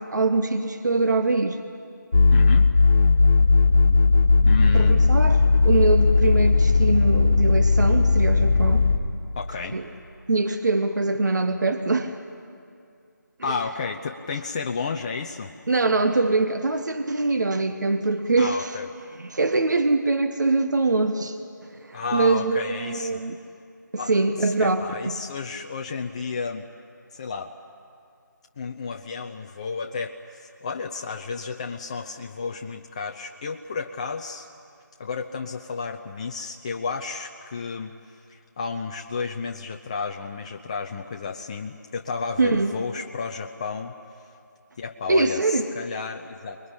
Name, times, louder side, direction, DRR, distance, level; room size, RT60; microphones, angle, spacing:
voice 1, 0.0-1.6 4.7-8.8 9.7-9.9 10.3-12.2 13.4-13.5 15.7-18.8 19.2-21.4 21.8-23.4 23.9-25.2 42.4-42.7 45.1-45.7, right 3 dB, 65° right, 7 dB, 1.3 m, -23 dB
sound 1, 2.1-9.0, left 4 dB, 55° left, 2.5 m, -17 dB
voice 2, 2.3-2.7 4.4-5.0 9.4-9.8 13.4-15.5 18.4-18.9 21.9-23.2 24.0-24.1 24.4-26.7 27.1-27.5 28.6-34.5 35.0-43.9 44.8-46.6, left 5 dB, 20° left, 3 dB, 0.5 m, -32 dB
25.0 x 21.0 x 9.9 m, 2.4 s
figure-of-eight pair, 160°, 10 cm